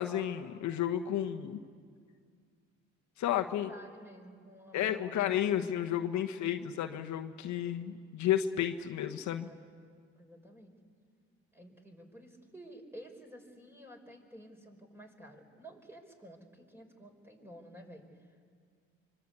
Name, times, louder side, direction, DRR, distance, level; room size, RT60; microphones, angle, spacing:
voice 1, 0.0-1.6 3.2-3.7 4.7-9.5, left 10 dB, 70° left, 6 dB, 1.2 m, -32 dB
voice 2, 3.7-5.4 6.0-6.4 10.1-10.7 11.5-18.5, equal, 10° right, 3 dB, 5.2 m, -52 dB
25.0 x 23.5 x 8.4 m, 2.1 s
supercardioid pair, 60°, 30 cm